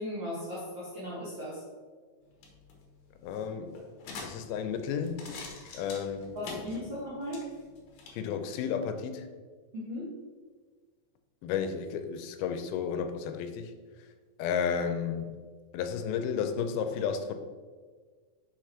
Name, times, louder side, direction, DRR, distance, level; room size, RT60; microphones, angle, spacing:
voice 1, 0.0-1.6 6.3-7.4 9.7-10.1, left 1 dB, 55° right, -8 dB, 1.4 m, -37 dB
sound 1, 2.2-8.2, left 3 dB, 65° left, 1.9 m, -46 dB
voice 2, 3.2-3.8 4.2-5.2 5.7-6.3 8.1-9.3 11.4-13.7 14.4-15.4 15.7-17.3, left 7 dB, 85° left, 8 dB, 2.4 m, -32 dB
5.9 x 5.0 x 4.4 m, 1.5 s
omnidirectional pair, 4.3 m